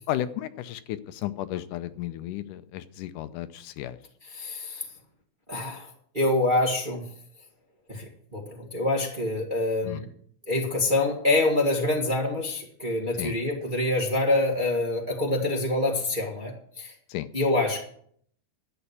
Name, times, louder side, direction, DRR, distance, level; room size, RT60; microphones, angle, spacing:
voice 1, 0.1-4.0 9.8-10.0 13.2-13.4 17.1-17.3, left 13 dB, 80° left, 11 dB, 2.1 m, -33 dB
voice 2, 4.2-4.8 5.5-5.9 6.1-7.0 7.9-10.1 10.5-16.9 17.3-17.8, left 2 dB, 25° right, 0 dB, 1.2 m, -26 dB
11.0 x 8.0 x 8.3 m, 0.63 s
omnidirectional pair, 3.7 m